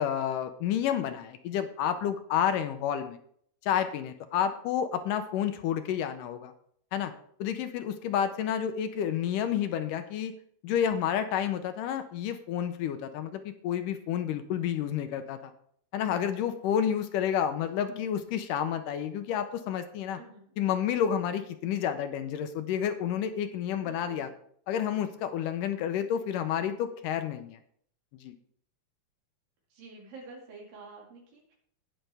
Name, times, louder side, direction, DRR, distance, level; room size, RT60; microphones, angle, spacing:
voice 1, 0.0-3.2 3.6-6.5 6.9-7.1 7.4-10.3 10.6-15.5 15.9-20.2 20.6-24.3 24.7-27.6 28.2-28.3, left 9 dB, 75° left, 9 dB, 2.2 m, -30 dB
voice 2, 20.1-20.6 23.8-24.3 29.7-31.5, right 3 dB, 90° right, -2 dB, 4.0 m, -48 dB
19.0 x 6.6 x 3.4 m, 0.63 s
omnidirectional pair, 4.0 m